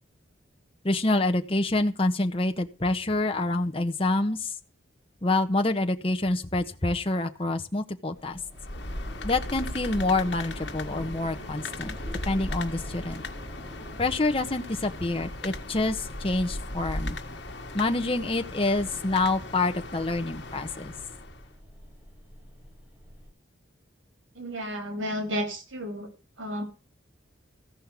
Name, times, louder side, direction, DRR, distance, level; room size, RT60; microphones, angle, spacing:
voice 1, 0.8-4.5 5.2-8.4 9.2-11.9 12.3-13.2 14.0-17.2 17.7-20.9, left 2 dB, 30° left, 5 dB, 1.1 m, -27 dB
sound 1, 8.1-23.3, equal, 15° right, 4.4 m, -48 dB
sound 2, 8.5-21.5, left 1 dB, 60° left, 1.6 m, -37 dB
voice 2, 24.3-26.1 26.4-26.6, equal, 80° right, 6 dB, 3.3 m, -32 dB
14.5 x 5.6 x 8.2 m, 0.35 s
head